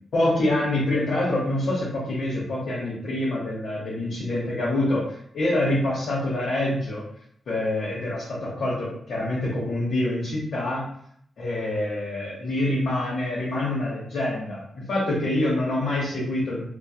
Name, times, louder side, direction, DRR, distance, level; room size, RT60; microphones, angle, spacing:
voice 1, 0.1-7.0 7.5-10.9 11.4-16.7, left 1 dB, 75° left, -7 dB, 0.8 m, -26 dB
2.7 x 2.3 x 2.3 m, 0.67 s
cardioid pair, 60°, 0 cm